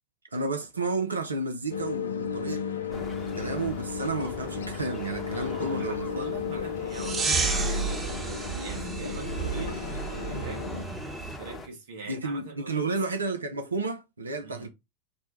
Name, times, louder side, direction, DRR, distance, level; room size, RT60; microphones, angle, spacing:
voice 1, 0.3-3.1 3.3-6.7 12.1-14.7, right 3 dB, 75° right, 0.5 m, -32 dB
sound 1, 1.7-10.8, left 7 dB, 70° left, 0.5 m, -35 dB
voice 2, 2.6-3.2 5.2-10.7 11.4-13.0 14.4-14.7, right 4 dB, 60° right, 1.0 m, -43 dB
sound 2, 2.9-11.7, left 1 dB, 20° left, 0.9 m, -41 dB
sound 3, 6.9-11.4, right 4 dB, 15° right, 0.9 m, -31 dB
4.2 x 2.1 x 4.5 m
figure-of-eight pair, 90°, 0 cm